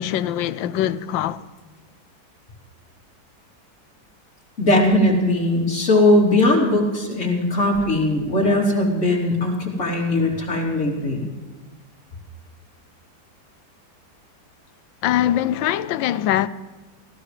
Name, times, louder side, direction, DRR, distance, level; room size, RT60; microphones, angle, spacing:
voice 1, 0.0-1.4 15.0-16.5, left 11 dB, 80° left, 1.3 m, -22 dB
voice 2, 4.6-11.3, left 1 dB, 40° left, 3.5 m, -19 dB
19.5 x 16.0 x 3.3 m
omnidirectional pair, 2.1 m